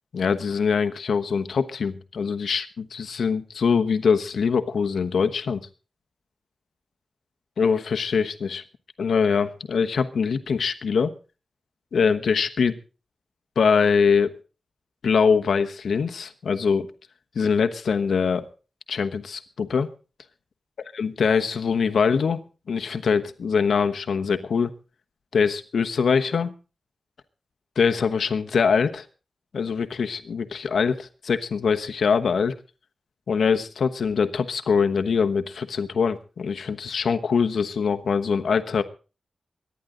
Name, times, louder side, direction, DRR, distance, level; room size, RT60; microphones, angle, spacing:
voice 1, 0.1-5.7 7.6-8.6 9.0-11.1 11.9-12.8 13.6-14.3 15.0-16.9 17.3-18.5 18.9-19.9 21.0-22.4 22.7-24.7 25.3-26.5 27.8-29.0 29.5-32.5 33.3-38.8, left 6 dB, 75° left, 8 dB, 1.1 m, -23 dB
24.0 x 10.5 x 3.9 m, 0.34 s
wide cardioid pair, 180°, 0 cm